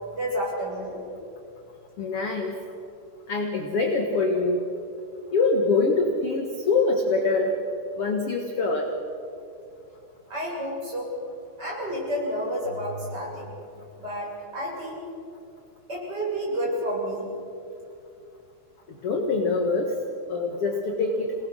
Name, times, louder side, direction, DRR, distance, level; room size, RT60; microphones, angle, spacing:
voice 1, 0.1-1.0 10.3-11.1 11.6-13.5 14.0-15.0 15.9-17.3, equal, 20° right, -5 dB, 7.6 m, -30 dB
voice 2, 2.0-2.5 3.3-4.6 5.3-7.5 8.0-8.9 19.0-20.0 20.3-21.3, left 3 dB, 55° left, 2 dB, 1.6 m, -24 dB
28.0 x 19.5 x 6.4 m, 2.6 s
omnidirectional pair, 4.9 m